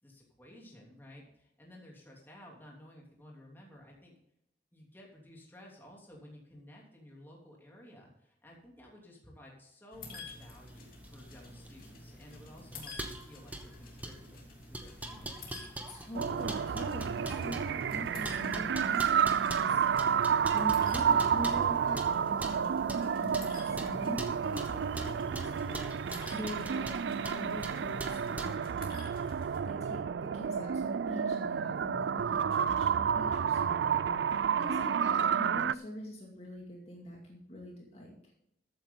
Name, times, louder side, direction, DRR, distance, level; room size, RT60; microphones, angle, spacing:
voice 1, 0.0-4.1 4.7-15.5, left 1 dB, 10° left, -2 dB, 3.0 m, -54 dB
sound 1, 9.9-29.6, left 2 dB, 55° left, 2.9 m, -51 dB
sound 2, 10.1-28.6, right 1 dB, 10° right, 1.3 m, -44 dB
voice 2, 15.9-19.8 20.5-29.1 29.6-38.3, left 1 dB, 35° left, -2 dB, 2.4 m, -44 dB
sound 3, 16.1-35.7, right 7 dB, 85° right, 0.3 m, -30 dB
14.0 x 9.0 x 3.9 m, 0.76 s
head